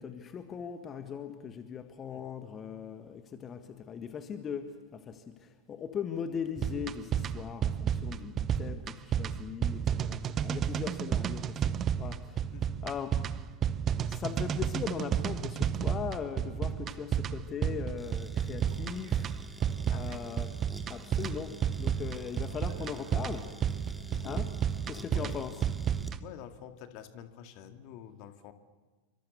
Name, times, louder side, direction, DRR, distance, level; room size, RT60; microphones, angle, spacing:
voice 1, 0.0-13.5 14.1-20.6 20.9-23.5 24.2-24.6 24.9-25.7, left 7 dB, 25° left, 8 dB, 1.7 m, -39 dB
sound 1, 6.6-26.2, right 8 dB, 25° right, 0.9 m, -32 dB
voice 2, 12.5-12.8 14.0-14.2 19.9-20.2 24.1-24.4 25.1-25.4 26.2-28.5, left 10 dB, 45° left, 7 dB, 2.0 m, -48 dB
sound 2, 18.0-26.2, right 1 dB, ahead, 2.3 m, -50 dB
sound 3, 18.5-25.8, right 9 dB, 55° right, 3.0 m, -58 dB
29.0 x 25.0 x 7.0 m, 1.3 s
figure-of-eight pair, 90°, 0 cm